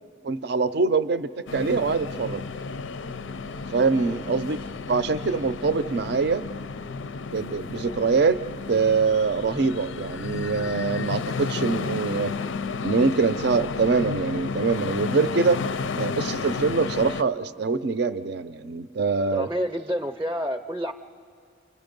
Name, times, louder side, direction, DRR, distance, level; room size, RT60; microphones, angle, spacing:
voice 1, 0.2-2.4 3.7-6.4 7.3-8.4 8.7-12.3 12.8-15.6 16.0-19.5, right 4 dB, 60° right, 13 dB, 0.5 m, -24 dB
sound 1, 1.5-17.2, left 4 dB, 90° left, 0.5 m, -32 dB
voice 2, 19.3-20.9, equal, 15° right, 6 dB, 0.5 m, -29 dB
29.5 x 29.0 x 5.3 m, 2.3 s
head